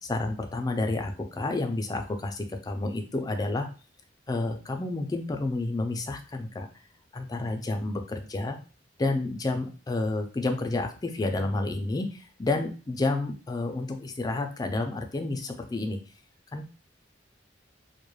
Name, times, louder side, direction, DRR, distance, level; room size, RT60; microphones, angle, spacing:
voice 1, 0.0-3.7 4.3-6.7 7.1-8.6 9.0-16.0 16.5-16.7, left 2 dB, 20° left, 5 dB, 0.3 m, -30 dB
2.3 x 2.1 x 3.0 m, 0.36 s
head